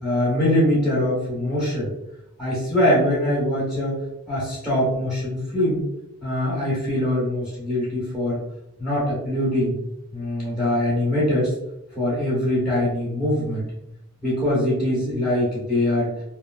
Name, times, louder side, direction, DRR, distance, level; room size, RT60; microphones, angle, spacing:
voice 1, 0.0-1.9 2.4-4.0 4.3-5.8 6.2-8.4 8.8-9.8 10.1-11.5 11.9-13.6 14.2-16.1, left 1 dB, 5° left, -9 dB, 1.1 m, -22 dB
3.2 x 2.3 x 2.4 m, 0.83 s
head